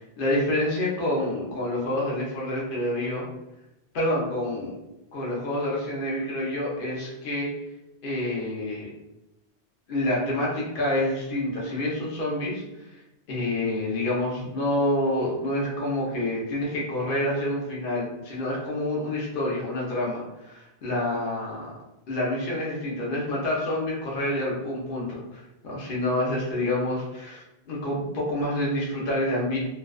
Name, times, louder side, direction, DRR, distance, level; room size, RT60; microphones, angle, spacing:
voice 1, 0.2-3.3 3.9-4.7 5.1-7.5 8.0-8.9 9.9-12.6 13.3-21.7 22.1-27.4 27.7-29.6, left 1 dB, 55° left, -4 dB, 0.8 m, -27 dB
2.5 x 2.1 x 2.3 m, 0.92 s
omnidirectional pair, 1.1 m